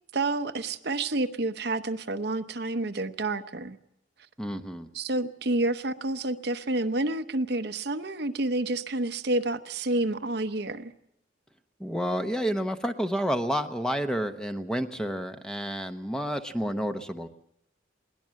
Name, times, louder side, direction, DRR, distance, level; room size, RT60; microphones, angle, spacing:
voice 1, 0.1-3.8 4.9-10.9, right 2 dB, 55° right, 9 dB, 0.9 m, -29 dB
voice 2, 4.4-4.9 11.8-17.3, equal, 5° left, 7 dB, 0.9 m, -30 dB
22.0 x 18.0 x 7.6 m, 0.78 s
head